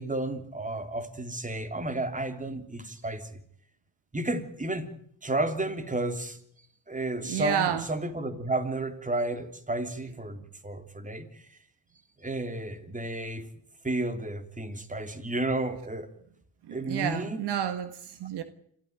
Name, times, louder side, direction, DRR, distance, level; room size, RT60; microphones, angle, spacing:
voice 1, 0.0-3.4 4.1-4.9 5.2-6.4 6.9-11.4 12.2-13.5 13.8-16.1 16.7-17.4, right 2 dB, 20° right, 3.3 m, -32 dB
voice 2, 7.2-7.9 16.6-18.4, right 9 dB, 65° right, 1.7 m, -30 dB
26.5 x 13.5 x 9.2 m
hypercardioid pair, 60°, 43 cm